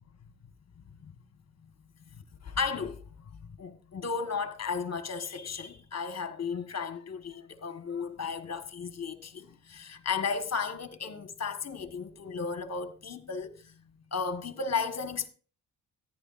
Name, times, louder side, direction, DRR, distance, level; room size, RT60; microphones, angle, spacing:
voice 1, 0.8-1.1 2.1-3.0 3.4-13.8 14.1-15.3, left 5 dB, 35° left, 1.5 m, -34 dB
14.0 x 10.5 x 2.6 m
supercardioid pair, 60°, 43 cm